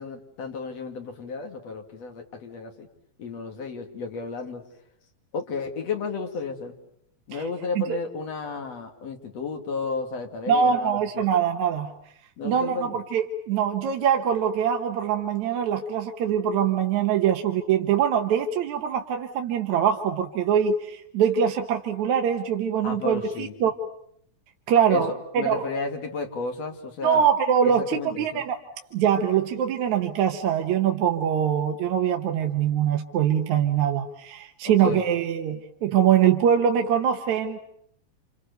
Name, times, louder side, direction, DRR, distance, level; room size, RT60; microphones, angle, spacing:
voice 1, 0.0-2.9 3.2-4.6 5.3-6.7 7.3-11.3 12.4-13.0 22.8-23.7 24.9-25.0 25.4-27.3 27.6-28.4 34.6-35.0, left 4 dB, 50° left, 5 dB, 3.3 m, -33 dB
voice 2, 10.5-11.9 12.4-23.8 24.7-25.7 27.0-28.6 28.9-37.6, right 8 dB, 65° right, 4 dB, 2.3 m, -23 dB
29.5 x 27.5 x 6.8 m, 0.68 s
omnidirectional pair, 4.1 m